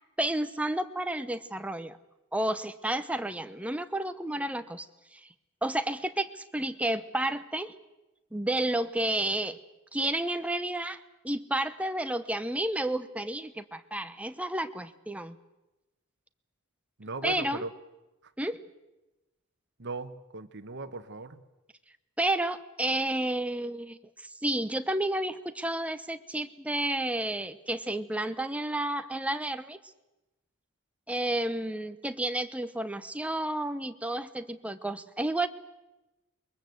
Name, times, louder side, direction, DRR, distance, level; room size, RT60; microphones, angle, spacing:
voice 1, 0.2-2.0 2.3-4.9 5.1-5.3 5.6-7.7 8.3-9.6 9.9-15.4 17.2-17.6 18.4-18.6 22.2-24.0 24.4-29.8 31.1-35.5, right 1 dB, 5° right, 10 dB, 0.9 m, -31 dB
voice 2, 17.0-17.7 19.8-21.4, right 3 dB, 55° right, 10 dB, 1.4 m, -38 dB
22.0 x 22.0 x 8.0 m, 1.0 s
head